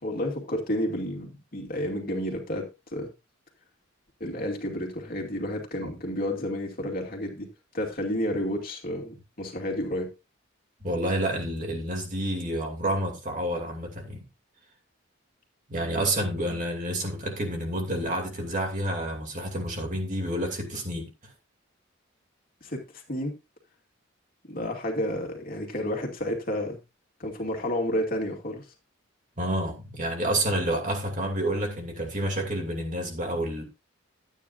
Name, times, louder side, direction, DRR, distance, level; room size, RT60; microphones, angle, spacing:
voice 1, 0.0-3.1 4.2-10.1 22.6-23.4 24.5-26.8 27.2-28.6, left 1 dB, 45° left, 2.4 m, -31 dB
voice 2, 10.8-14.2 15.7-21.1 29.4-33.6, right 1 dB, 40° right, 2.6 m, -29 dB
12.0 x 9.2 x 2.6 m
head